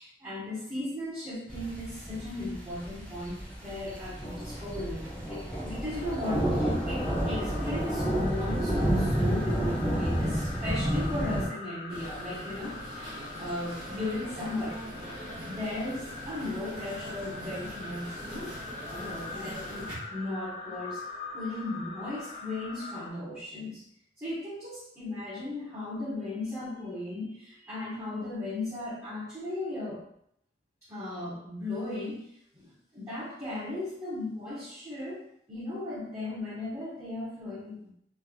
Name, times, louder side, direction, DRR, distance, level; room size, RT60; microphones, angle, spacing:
voice 1, 0.0-14.8 15.5-18.5 18.9-21.0 21.3-23.8 24.2-30.0 30.9-32.3 32.5-37.9, left 2 dB, 20° right, -11 dB, 1.1 m, -36 dB
sound 1, 1.5-11.5, right 1 dB, 10° left, 1.1 m, -30 dB
sound 2, 5.9-23.1, left 3 dB, 40° left, 0.5 m, -43 dB
sound 3, 11.9-19.9, equal, 35° right, 1.5 m, -42 dB
3.3 x 3.3 x 2.3 m, 0.72 s
head